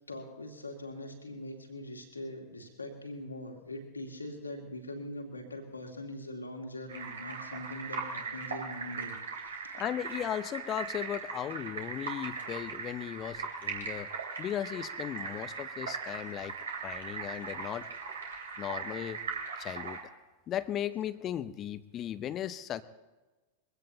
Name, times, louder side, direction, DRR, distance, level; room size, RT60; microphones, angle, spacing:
voice 1, 0.1-9.2 9.4-9.9 13.3-13.4, left 1 dB, 80° left, 2 dB, 2.5 m, -42 dB
sound 1, 6.9-20.0, right 5 dB, 70° right, 3.1 m, -39 dB
voice 2, 9.7-14.1 14.4-16.5 16.8-17.9 18.6-19.2 19.6-20.0 20.5-22.8, left 10 dB, 30° left, 14 dB, 0.8 m, -36 dB
23.0 x 16.0 x 2.8 m, 1.2 s
figure-of-eight pair, 90°, 0 cm